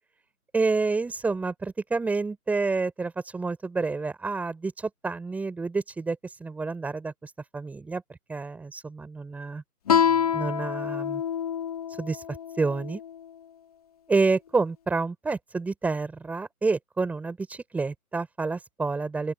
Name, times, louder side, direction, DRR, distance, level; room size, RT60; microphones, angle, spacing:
voice 1, 0.5-8.0 8.3-9.6 10.3-11.2 12.0-12.2 12.6-13.0 14.1-19.3, right 3 dB, 5° right, 5.4 m, -29 dB
Guitar, 9.9-13.1, left 8 dB, 25° left, 1.7 m, -26 dB
open air
figure-of-eight pair, 145°, 45 cm